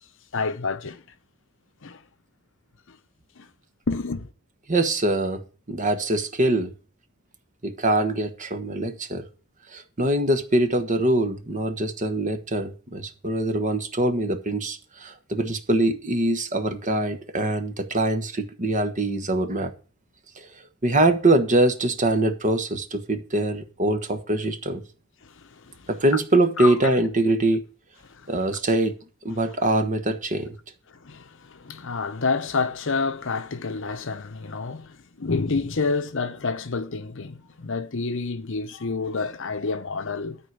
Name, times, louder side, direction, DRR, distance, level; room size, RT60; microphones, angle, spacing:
voice 1, 0.3-1.0 1.8-2.0 2.9-3.0 3.4-3.5 3.9-4.3 25.2-25.9 26.6-26.9 28.0-28.3 30.9-40.4, left 4 dB, 55° left, 0.8 m, -29 dB
voice 2, 4.7-5.4 5.7-6.7 7.6-9.2 9.7-19.7 20.4-20.5 20.8-24.8 25.9-27.6 28.3-28.9 29.2-30.5, right 2 dB, 35° right, 1.2 m, -23 dB
12.5 x 4.7 x 7.9 m
head